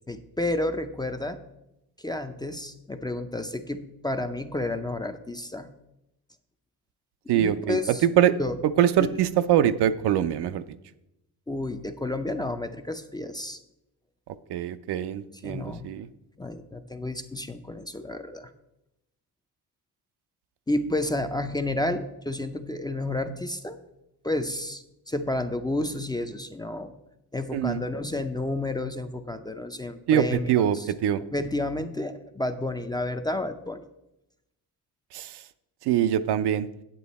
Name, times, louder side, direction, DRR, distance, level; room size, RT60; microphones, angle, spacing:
voice 1, 0.1-1.4 2.0-5.7 7.3-8.1 8.4-8.5 9.0-9.1 11.5-13.6 15.4-15.9 16.4-18.5 20.7-23.8 24.2-26.9 27.3-30.9 31.3-33.8, left 1 dB, 10° left, 7 dB, 0.4 m, -31 dB
voice 2, 7.3-8.4 8.8-10.6 14.5-16.1 27.5-27.8 30.1-31.2 35.1-35.4 35.8-36.7, right 10 dB, 75° right, 12 dB, 0.6 m, -23 dB
9.1 x 7.7 x 4.1 m, 0.89 s
cardioid pair, 120°, 40 cm